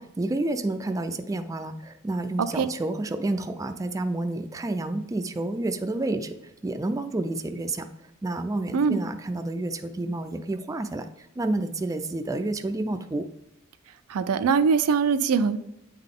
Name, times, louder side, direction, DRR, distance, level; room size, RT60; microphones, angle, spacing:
voice 1, 0.0-6.4 6.6-7.9 8.2-13.3, right 2 dB, 15° right, 7 dB, 0.3 m, -29 dB
voice 2, 14.1-15.6, right 5 dB, 90° right, 12 dB, 0.4 m, -22 dB
8.8 x 3.8 x 3.7 m, 0.87 s
head